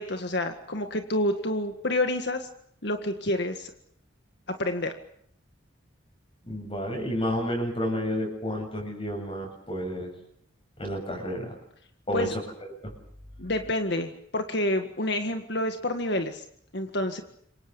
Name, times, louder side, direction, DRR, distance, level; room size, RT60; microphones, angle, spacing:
voice 1, 0.0-2.5 2.8-3.7 4.5-4.9 12.1-12.3 13.4-16.4 16.7-17.2, left 1 dB, 55° left, 6 dB, 1.9 m, -28 dB
voice 2, 6.4-10.1 10.8-11.5 12.1-12.4 12.8-12.9, equal, 30° left, 1 dB, 7.6 m, -30 dB
28.0 x 24.0 x 7.2 m, 0.67 s
head